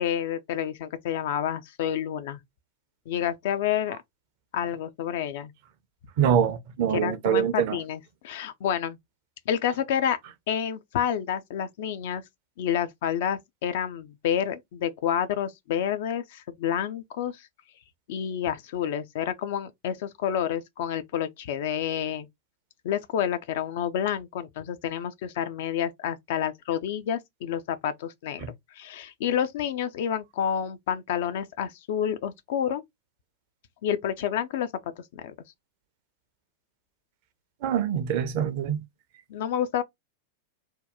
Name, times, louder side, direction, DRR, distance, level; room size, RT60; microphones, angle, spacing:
voice 1, 0.0-2.4 3.1-4.0 4.5-5.5 6.9-9.0 9.5-10.2 10.5-12.2 12.6-17.5 18.1-22.3 22.8-28.5 28.7-32.8 33.8-35.3 39.3-39.8, left 9 dB, 55° left, 0.4 m, -29 dB
voice 2, 6.2-7.8 28.4-28.5 37.6-38.8, right 9 dB, 45° right, 0.6 m, -24 dB
2.7 x 2.2 x 3.5 m
figure-of-eight pair, 90°, 0 cm